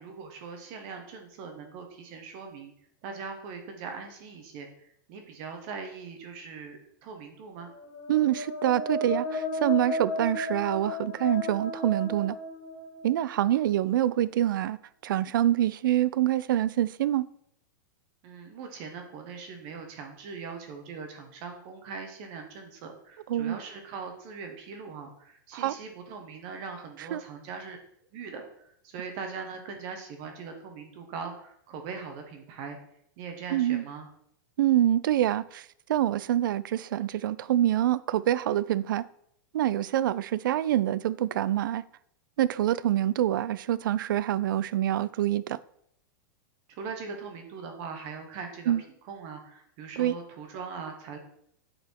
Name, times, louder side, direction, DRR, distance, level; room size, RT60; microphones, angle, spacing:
voice 1, 0.0-2.7 3.0-7.7 18.2-27.8 28.1-32.8 33.2-34.1 46.7-48.7 49.0-51.2, right 5 dB, 35° right, 0.9 m, -41 dB
sound 1, 7.7-13.4, left 2 dB, 70° left, 2.8 m, -34 dB
voice 2, 8.1-12.4 13.0-14.8 15.0-17.3 23.3-23.6 25.5-25.7 27.1-27.2 33.5-33.8 34.6-39.1 39.5-41.8 42.4-45.6 48.7-48.8 50.0-50.1, right 12 dB, 80° right, 0.4 m, -26 dB
8.3 x 4.2 x 4.4 m
supercardioid pair, 170°, 11 cm